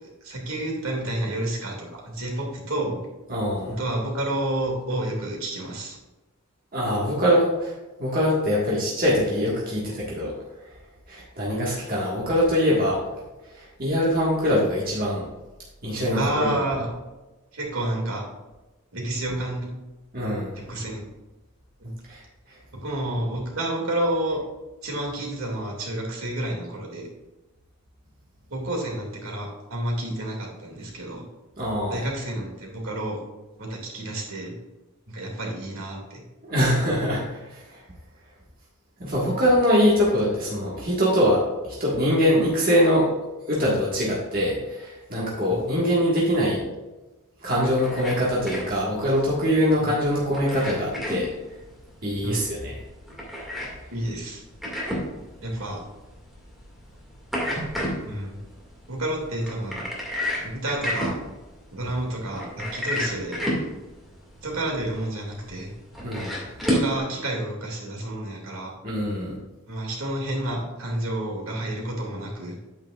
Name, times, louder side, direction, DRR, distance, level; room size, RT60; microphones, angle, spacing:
voice 1, 0.0-3.0 3.8-6.0 16.1-16.9 17.5-18.3 18.9-19.8 20.5-21.1 21.8-21.9 22.8-24.4 24.8-27.1 28.5-31.2 31.9-33.2 33.6-34.5 35.1-36.2 45.4-45.6 49.8-49.9 52.2-52.5 53.9-54.4 55.4-55.8 58.0-58.4 58.9-59.9 60.4-61.2 61.7-63.4 64.4-65.7 66.7-68.7 69.7-72.6, right 1 dB, 70° right, -1 dB, 2.3 m, -30 dB
voice 2, 3.3-3.8 6.7-7.7 8.0-10.3 11.1-13.0 13.5-15.2 15.8-16.6 20.1-20.6 22.1-22.2 31.6-32.1 36.4-37.8 39.0-43.1 43.5-46.6 47.4-51.3 52.0-52.7 66.0-66.4 68.8-69.4, equal, 40° right, -6 dB, 1.6 m, -23 dB
sound 1, 47.5-67.0, equal, ahead, 2.0 m, -32 dB
8.9 x 8.9 x 2.4 m, 1.1 s
head